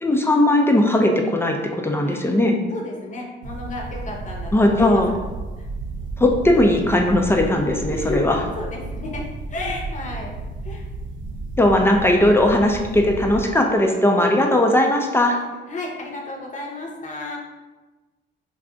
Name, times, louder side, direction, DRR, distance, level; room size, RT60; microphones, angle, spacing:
voice 1, 0.0-2.6 4.5-5.1 6.2-8.4 11.6-15.4, left 1 dB, 10° left, 2 dB, 0.4 m, -18 dB
voice 2, 2.7-5.2 5.6-5.7 7.8-10.3 10.6-10.8 15.7-17.4, left 2 dB, 40° left, -1 dB, 0.7 m, -32 dB
sound 1, 3.4-13.4, right 3 dB, 70° right, 0.4 m, -32 dB
2.3 x 2.3 x 3.7 m, 1.2 s
cardioid pair, 90°, 20 cm